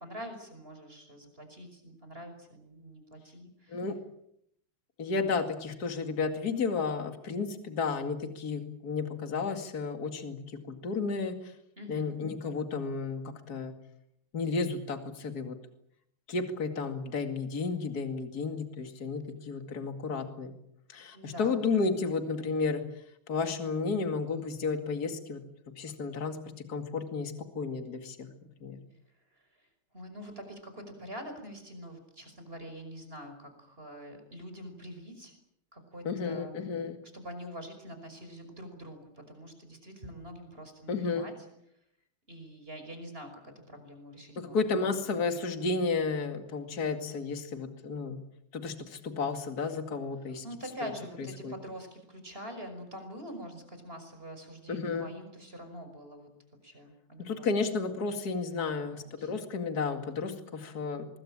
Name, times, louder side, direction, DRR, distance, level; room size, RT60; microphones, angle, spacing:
voice 1, 0.0-3.8 11.8-12.2 21.1-21.7 29.3-29.7 29.9-35.3 35.7-36.6 37.1-41.3 42.3-44.9 50.4-56.3 56.6-57.7 58.9-59.3, equal, 25° right, 7 dB, 5.8 m, -45 dB
voice 2, 5.0-11.5 11.9-13.7 14.3-15.6 16.3-20.5 20.9-22.8 23.3-25.4 25.8-26.4 26.7-28.3 28.6-28.8 36.0-37.0 40.9-41.3 44.4-48.2 48.5-50.4 50.8-50.9 51.4-51.5 54.7-55.1 57.2-61.1, left 4 dB, 45° left, 7 dB, 2.7 m, -32 dB
24.0 x 22.0 x 8.8 m, 0.74 s
omnidirectional pair, 2.3 m